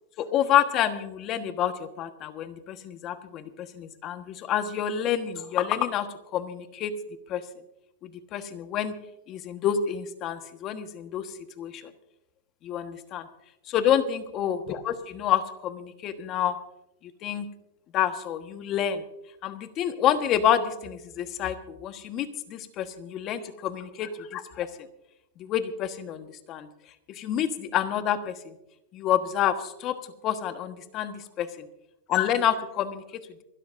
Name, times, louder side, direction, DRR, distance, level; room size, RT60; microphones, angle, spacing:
voice 1, 0.2-6.9 7.3-7.4 8.0-8.9 9.3-11.9 12.6-13.3 13.7-16.6 17.0-17.4 17.9-19.0 19.4-24.7 25.4-26.7 27.1-28.5 28.9-30.0 30.2-31.7 32.1-33.4, left 10 dB, 40° left, 9 dB, 1.4 m, -28 dB
26.5 x 12.5 x 2.6 m, 0.86 s
hypercardioid pair, 120°, 0 cm